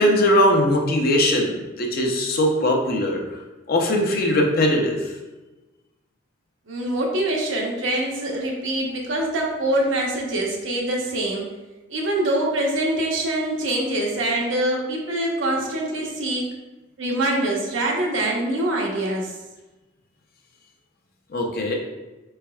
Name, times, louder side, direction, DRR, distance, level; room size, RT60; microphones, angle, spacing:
voice 1, 0.0-3.2 3.7-5.1 21.3-21.7, left 1 dB, 50° left, 0 dB, 0.7 m, -20 dB
voice 2, 6.7-11.5 11.9-16.5 17.0-19.3, right 1 dB, 75° right, -1 dB, 0.9 m, -24 dB
4.6 x 4.3 x 2.3 m, 1.1 s
head